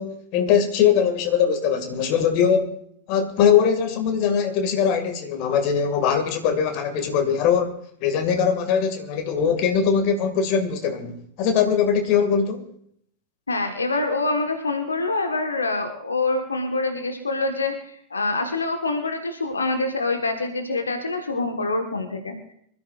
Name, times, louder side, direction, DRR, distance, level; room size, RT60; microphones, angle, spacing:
voice 1, 0.0-2.8 3.1-7.7 8.0-12.6, left 7 dB, 45° left, 2.1 m, -21 dB
voice 2, 13.5-22.5, left 3 dB, 75° left, 1.4 m, -25 dB
25.5 x 13.0 x 2.5 m
figure-of-eight pair, 90°, 0 cm